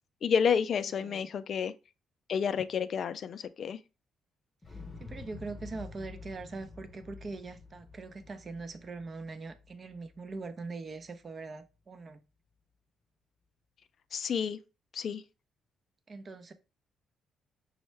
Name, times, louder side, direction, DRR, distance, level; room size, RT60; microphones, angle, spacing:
voice 1, 0.2-1.7 2.3-3.8 14.1-14.6 14.9-15.2, left 7 dB, 55° left, 0.3 m, -30 dB
voice 2, 0.9-1.2 4.7-12.2 16.1-16.5, right 3 dB, 40° right, 0.6 m, -42 dB
Explosion, 4.6-10.7 11.0-11.1, left 3 dB, 35° left, 0.7 m, -49 dB
6.2 x 2.1 x 3.2 m
cardioid pair, 90°, 0 cm